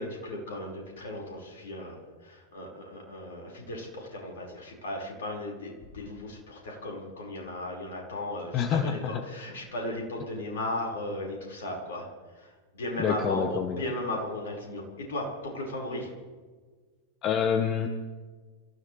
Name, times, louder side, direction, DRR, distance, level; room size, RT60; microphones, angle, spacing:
voice 1, 0.0-12.1 12.3-16.1, left 1 dB, 60° left, -1 dB, 5.2 m, -36 dB
voice 2, 8.5-9.2 13.0-13.8 17.2-17.9, left 7 dB, 35° left, 7 dB, 1.1 m, -27 dB
28.0 x 15.0 x 3.4 m, 1.4 s
figure-of-eight pair, 90°, 0 cm